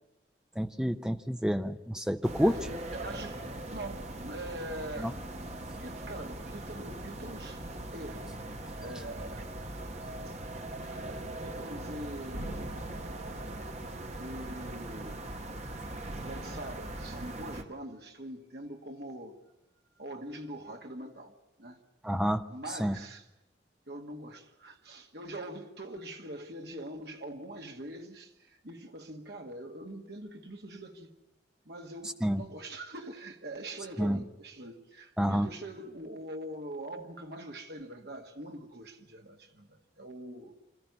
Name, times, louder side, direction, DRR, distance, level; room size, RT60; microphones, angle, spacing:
voice 1, 0.6-2.5 5.0-5.1 22.0-22.4 22.8-23.0 32.2-32.4 34.0-34.2 35.2-35.5, equal, 5° right, 0.7 m, -28 dB
sound 1, 2.2-17.6, right 1 dB, 40° right, 1.4 m, -40 dB
voice 2, 2.4-5.2 5.5-7.6 7.9-8.3 8.8-9.5 10.3-10.4 10.9-12.8 14.2-15.6 16.1-19.3 20.0-21.8 22.5-23.3 23.9-31.1 31.7-40.5, right 1 dB, 65° right, 2.0 m, -43 dB
26.0 x 13.5 x 9.6 m
head